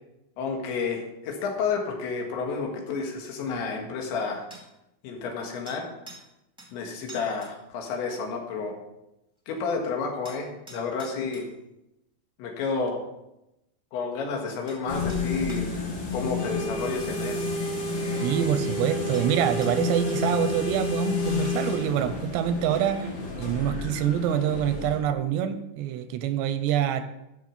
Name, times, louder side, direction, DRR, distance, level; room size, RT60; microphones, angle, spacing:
voice 1, 0.4-4.5 5.0-5.9 6.7-8.8 9.5-11.5 12.4-13.0 13.9-15.7 16.1-17.4, left 4 dB, 85° left, 1 dB, 4.0 m, -30 dB
sound 1, 4.5-4.7 5.6-6.3 6.6-6.7 7.1-7.5 10.2-11.5 14.1-14.2 14.7-14.8 15.1-15.7 17.3-17.4 18.4-18.5 19.1-19.3 19.6-20.0, right 1 dB, 5° right, 0.8 m, -46 dB
sound 2, 14.9-25.0, left 3 dB, 55° left, 4.3 m, -30 dB
voice 2, 18.2-23.1 23.4-27.1, right 9 dB, 85° right, 10 dB, 2.7 m, -26 dB
13.5 x 6.0 x 5.2 m, 0.90 s
omnidirectional pair, 5.1 m